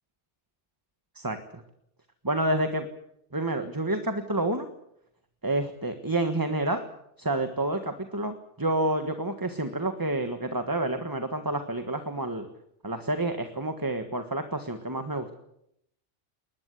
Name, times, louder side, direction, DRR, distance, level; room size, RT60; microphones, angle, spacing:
voice 1, 2.2-2.8 3.3-4.7 5.4-6.8 7.2-12.5 12.8-15.3, right 1 dB, 20° right, 7 dB, 1.5 m, -29 dB
21.5 x 20.0 x 8.3 m, 0.77 s
omnidirectional pair, 1.2 m